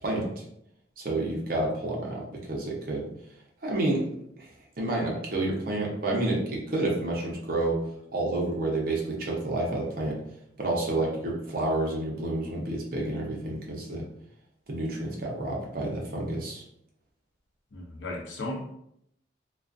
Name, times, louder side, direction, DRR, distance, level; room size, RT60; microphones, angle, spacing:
voice 1, 0.0-0.4 1.0-3.1 3.6-4.0 4.4-4.5 4.8-7.8 8.1-10.1 10.6-14.0 14.7-16.6, right 2 dB, 50° right, -2 dB, 0.6 m, -29 dB
voice 2, 17.7-18.8, left 1 dB, 75° left, -1 dB, 0.6 m, -35 dB
2.3 x 2.3 x 2.5 m, 0.73 s
head